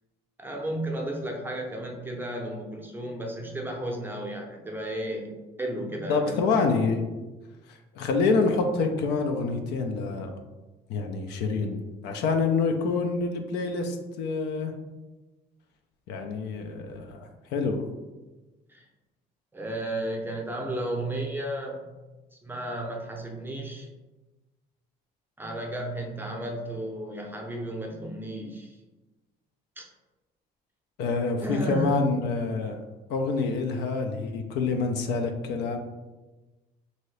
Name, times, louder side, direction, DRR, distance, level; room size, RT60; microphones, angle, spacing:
voice 1, 0.4-6.4 18.7-18.8 19.5-21.9 22.4-23.9 25.4-28.8 29.8-29.9 31.4-32.1, right 1 dB, 10° right, 1 dB, 0.6 m, -33 dB
voice 2, 6.1-7.1 7.9-10.3 10.9-14.7 16.1-17.8 31.0-32.8 33.1-35.8, left 4 dB, 85° left, 5 dB, 0.5 m, -27 dB
2.7 x 2.7 x 3.1 m, 1.1 s
cardioid pair, 110°, 17 cm